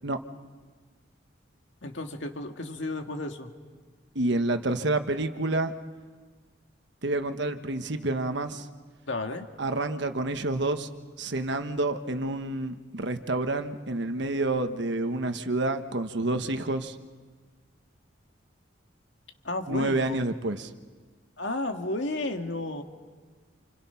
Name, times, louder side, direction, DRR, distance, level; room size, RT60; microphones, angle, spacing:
voice 1, 1.8-3.5 9.1-9.5 19.4-20.2 21.4-22.8, left 2 dB, 70° left, 4 dB, 2.0 m, -32 dB
voice 2, 4.1-5.7 7.0-8.7 9.6-10.9 11.2-17.0 19.7-20.7, right 2 dB, 65° right, 8 dB, 1.3 m, -28 dB
29.0 x 28.0 x 5.8 m, 1.5 s
head